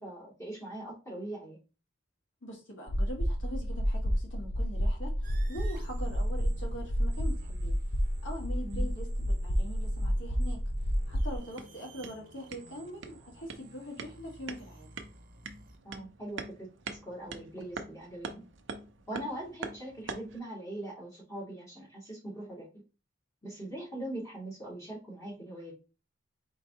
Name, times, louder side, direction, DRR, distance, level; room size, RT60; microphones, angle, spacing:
voice 1, 0.0-1.6 8.6-8.9 15.8-18.4 19.1-22.8 23.4-25.7, right 1 dB, 15° left, 2.5 m, -41 dB
voice 2, 2.4-7.8 8.2-10.7 11.1-14.9, equal, 85° left, 2.0 m, -43 dB
sound 1, 2.9-11.4, equal, 45° left, 0.7 m, -30 dB
sound 2, 5.2-15.8, right 2 dB, 45° right, 0.9 m, -55 dB
sound 3, 11.3-20.4, right 4 dB, 80° right, 0.7 m, -45 dB
4.5 x 3.8 x 2.9 m
head